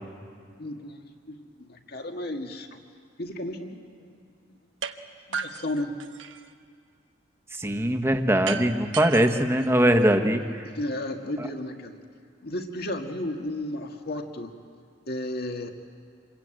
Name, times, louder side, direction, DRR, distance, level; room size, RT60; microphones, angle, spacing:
voice 1, 0.6-2.7 3.2-4.1 4.5-4.6 5.3-6.0 10.6-12.0 12.4-14.6 15.1-15.7, left 1 dB, 55° left, 4 dB, 1.9 m, -33 dB
sound 1, 4.8-5.0 5.3-6.5 8.5-10.4, right 6 dB, 90° right, 1.2 m, -35 dB
voice 2, 7.5-10.7 11.4-11.5, right 1 dB, 15° right, 6 dB, 1.4 m, -22 dB
27.0 x 22.0 x 9.0 m, 2.2 s
head